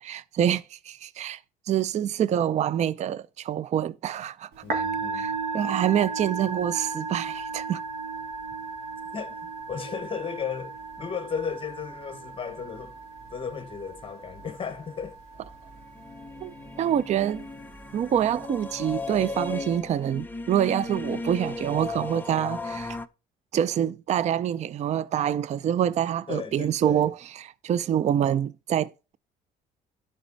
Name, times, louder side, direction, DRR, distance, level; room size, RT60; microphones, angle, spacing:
voice 1, 0.0-1.4 1.7-4.8 5.1-7.8 16.4-17.5 17.9-23.0 23.5-29.2, right 10 dB, 40° right, 0.4 m, -26 dB
Musical instrument, 4.5-19.3, right 4 dB, 70° right, 3.0 m, -36 dB
voice 2, 4.6-5.4 9.1-9.4 9.7-12.9 13.3-15.1 26.3-27.1, left 6 dB, 30° left, 1.2 m, -35 dB
sound 1, 15.8-23.1, left 3 dB, 10° left, 0.7 m, -36 dB
11.5 x 5.3 x 4.0 m
cardioid pair, 110°, 17 cm